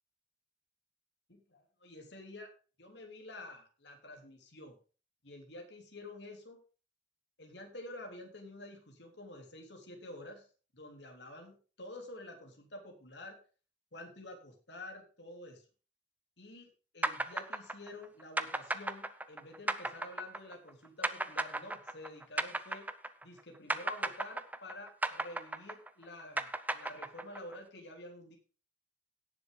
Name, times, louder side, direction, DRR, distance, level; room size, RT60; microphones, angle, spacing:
voice 1, 1.3-2.5 2.8-4.8 5.2-6.6 7.4-10.5 10.7-13.4 13.9-15.7 16.4-22.9 23.2-28.4, left 1 dB, 65° left, 2 dB, 3.5 m, -49 dB
sound 1, 17.0-23.4 23.7-27.5, right 2 dB, 10° right, 0.6 m, -35 dB
17.0 x 7.1 x 3.9 m, 0.36 s
head